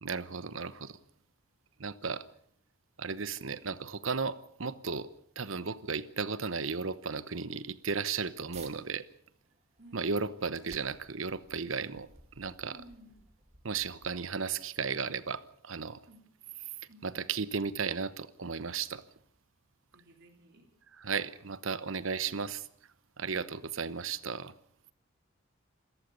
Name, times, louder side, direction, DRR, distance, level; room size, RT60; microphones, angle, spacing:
voice 1, 0.0-1.0 1.8-2.2 3.0-5.1 5.4-9.0 9.9-12.1 12.4-12.7 13.6-16.0 17.0-19.0 21.0-22.7 23.2-24.5, right 5 dB, 70° right, 15 dB, 1.0 m, -35 dB
sound 1, 8.4-8.7 9.3-14.5, right 4 dB, 30° right, 2.4 m, -57 dB
voice 2, 12.7-13.3 16.1-16.3 16.9-17.2 19.9-20.7, equal, 55° right, 3 dB, 3.1 m, -55 dB
27.5 x 14.5 x 6.9 m, 0.66 s
head